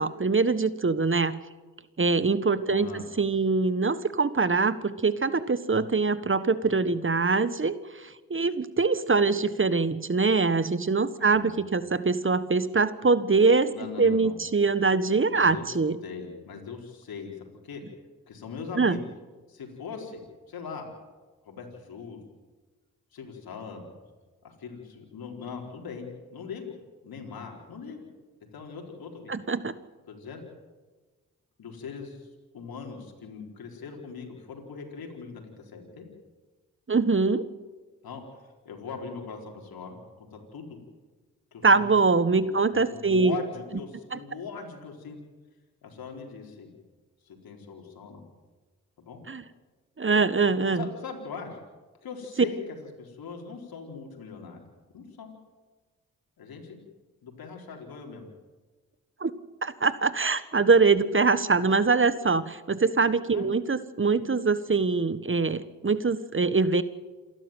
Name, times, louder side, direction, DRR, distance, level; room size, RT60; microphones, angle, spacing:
voice 1, 0.0-1.3 2.0-13.7 14.0-16.0 18.8-19.0 29.3-29.7 36.9-37.5 41.6-43.4 44.1-44.2 49.3-49.4 50.0-50.9 59.2-59.3 59.6-66.8, right 4 dB, 35° right, 15 dB, 1.5 m, -23 dB
voice 2, 2.7-3.1 11.2-11.6 13.7-14.4 15.3-15.6 16.0-17.8 18.3-19.1 19.5-20.2 20.5-20.9 21.4-22.2 23.1-23.8 24.4-26.7 27.0-28.1 28.5-29.3 30.1-30.4 31.6-32.3 32.5-36.1 38.0-38.3 38.6-40.8 41.5-41.8 42.4-45.2 45.8-46.7 47.3-48.2 49.0-49.2 50.7-51.6 52.0-54.6 54.9-55.3 56.4-56.8 57.2-58.3 63.3-63.5, left 5 dB, 70° left, 1 dB, 4.5 m, -40 dB
28.0 x 12.5 x 9.2 m, 1.3 s
supercardioid pair, 40°, 37 cm